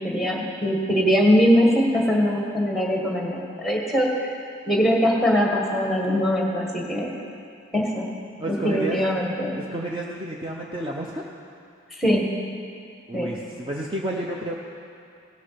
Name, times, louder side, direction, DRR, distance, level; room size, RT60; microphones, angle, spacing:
voice 1, 0.0-4.4 4.7-7.1 7.7-8.1 8.5-9.6 12.0-12.2 13.1-13.3, equal, ahead, -1 dB, 1.5 m, -22 dB
voice 2, 8.4-9.0 9.5-11.2 13.1-14.5, right 1 dB, 25° right, -1 dB, 0.6 m, -30 dB
17.0 x 6.6 x 5.8 m, 2.5 s
head